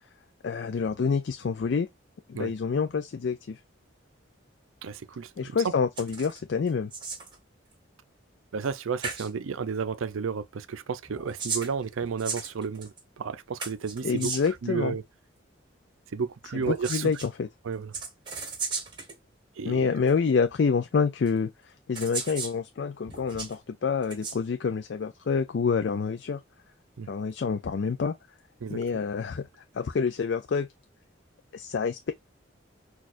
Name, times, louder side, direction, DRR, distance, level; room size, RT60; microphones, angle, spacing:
voice 1, 0.4-1.9 2.3-3.6 5.4-6.9 14.0-14.9 16.7-17.5 19.7-21.5 21.9-26.4 27.1-28.1 28.7-29.5 29.7-30.7 31.5-32.1, left 5 dB, 60° left, 0.4 m, -27 dB
voice 2, 4.8-5.7 8.5-14.3 14.6-15.0 16.1-17.1 17.6-17.9 19.6-19.9 27.0-27.1 28.6-28.8, right 6 dB, 90° right, 0.5 m, -32 dB
sound 1, 6.0-6.4 6.7-7.4 8.6-8.8 9.0-9.3 11.1-13.0 13.6-14.6 16.6-17.3 17.9-19.2 20.1-20.2 21.3-21.4 21.9-22.6 23.1-23.5 24.0-24.4, right 4 dB, 25° right, 1.1 m, -35 dB
6.2 x 2.3 x 2.5 m
head